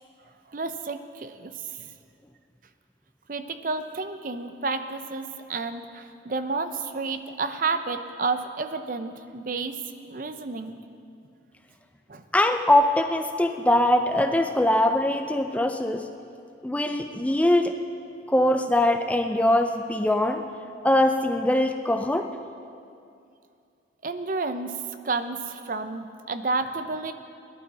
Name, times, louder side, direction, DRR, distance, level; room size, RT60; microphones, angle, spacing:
voice 1, 0.5-1.9 3.3-9.8 10.0-10.8 12.1-12.2 24.0-27.1, right 3 dB, 45° right, 9 dB, 0.6 m, -31 dB
voice 2, 12.3-16.1 16.6-17.8 18.3-20.4 20.8-22.3, left 1 dB, 10° left, 6 dB, 0.4 m, -22 dB
18.0 x 11.5 x 4.2 m, 2.5 s
head